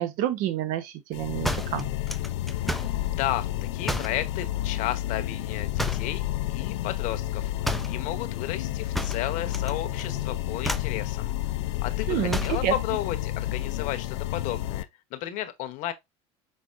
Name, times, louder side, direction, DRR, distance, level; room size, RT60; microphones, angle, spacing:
voice 1, 0.0-1.9 12.1-12.7, right 12 dB, 65° right, 0.9 m, -28 dB
sound 1, 1.1-14.8, left 14 dB, 90° left, 0.4 m, -30 dB
sound 2, 1.4-3.0 3.8-4.2 5.8-6.2 7.6-8.0 8.9-9.7 10.0-10.3 10.6-11.0 12.3-12.7, equal, ahead, 0.4 m, -31 dB
voice 2, 3.0-7.5 7.8-11.3 11.8-15.9, left 13 dB, 60° left, 0.8 m, -33 dB
5.5 x 4.0 x 2.4 m
supercardioid pair, 110°, 15 cm